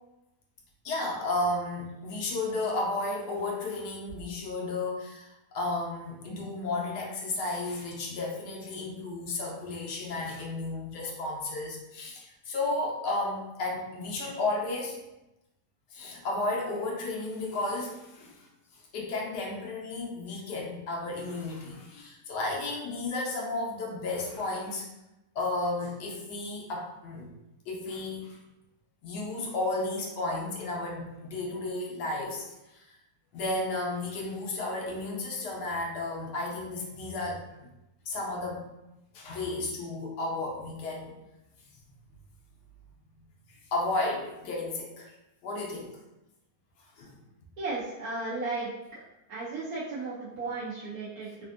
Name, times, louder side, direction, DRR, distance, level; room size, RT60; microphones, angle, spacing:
voice 1, 0.8-15.0 15.9-18.5 18.9-24.9 25.3-27.3 27.7-28.4 29.0-32.5 32.7-32.8 33.3-37.4 38.1-38.6 39.1-41.1 43.7-45.1 45.4-45.9 47.0-47.1, left 2 dB, 80° left, -2 dB, 1.2 m, -33 dB
voice 2, 47.6-49.0 49.3-51.4, right 3 dB, 70° right, -7 dB, 0.9 m, -35 dB
3.3 x 2.4 x 2.4 m, 0.94 s
omnidirectional pair, 1.8 m